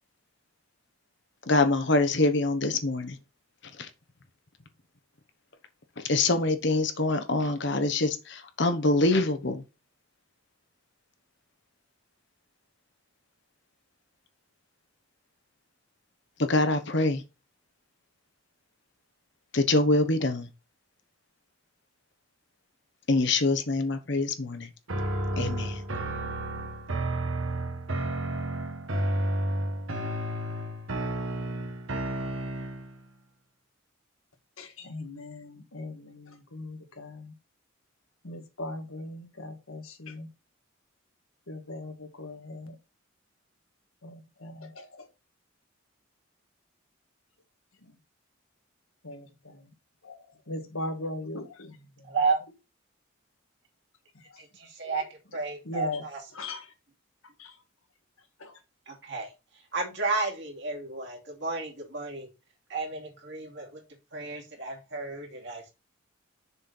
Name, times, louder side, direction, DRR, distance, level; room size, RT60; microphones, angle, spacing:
voice 1, 1.5-3.2 3.8-3.9 6.0-9.6 16.4-17.2 19.5-20.5 23.1-24.7 25.4-25.8, left 2 dB, 60° left, 1.0 m, -25 dB
sound 1, 24.9-33.0, right 1 dB, 75° right, 1.4 m, -31 dB
voice 2, 34.6-37.3 38.2-40.3 41.5-41.9 42.2-42.7 44.0-44.8 49.0-49.3 50.1-50.2 50.5-51.7 55.7-56.0 56.4-56.6, left 2 dB, 85° left, 1.7 m, -38 dB
voice 3, 52.0-52.4 54.4-56.3 58.9-62.3 62.7-63.8 64.1-65.7, right 4 dB, 60° right, 2.6 m, -32 dB
6.8 x 4.3 x 5.4 m
head